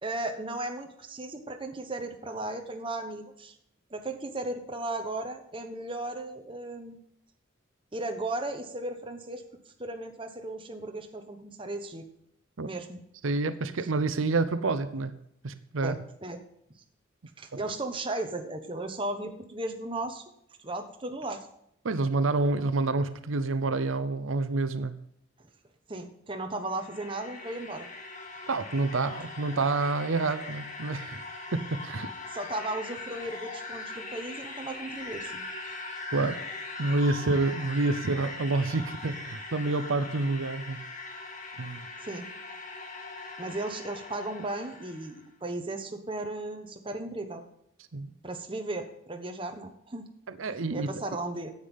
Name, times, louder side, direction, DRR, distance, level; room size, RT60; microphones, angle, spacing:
voice 1, 0.0-3.5 3.9-7.0 7.9-9.4 9.8-12.1 12.6-13.0 15.8-16.4 17.4-20.2 20.6-21.5 25.9-27.9 32.3-35.4 42.0-42.3 43.4-47.4 48.2-50.1 50.7-51.5, right 2 dB, 25° right, 5 dB, 1.2 m, -36 dB
voice 2, 13.2-15.2 15.4-16.0 17.5-17.6 21.8-25.0 28.5-31.2 31.5-32.1 36.1-36.4 36.8-40.8 41.6-41.9 47.9-48.1 50.3-50.9, right 3 dB, 85° right, 12 dB, 0.7 m, -28 dB
sound 1, 26.5-45.2, left 3 dB, 40° left, 1.8 m, -41 dB
10.0 x 8.2 x 5.4 m, 0.75 s
head